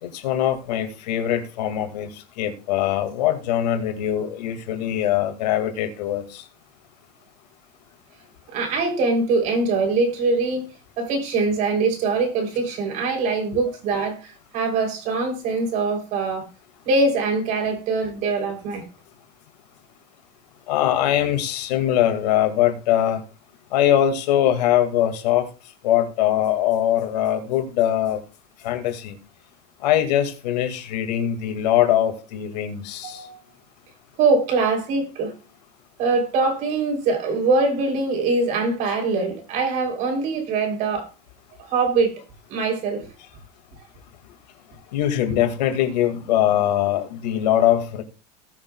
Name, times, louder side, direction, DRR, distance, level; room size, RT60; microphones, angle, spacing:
voice 1, 0.0-6.4 20.7-23.2 23.7-25.5 25.8-28.2 28.6-29.2 29.8-33.3 44.9-48.0, left 11 dB, 90° left, 2.2 m, -22 dB
voice 2, 8.5-10.6 11.0-16.5 16.9-18.8 33.0-33.3 34.2-35.3 36.0-41.1 41.6-42.1 42.5-43.1, right 3 dB, 40° right, 3.5 m, -23 dB
19.5 x 6.6 x 2.3 m
supercardioid pair, 175°, 21 cm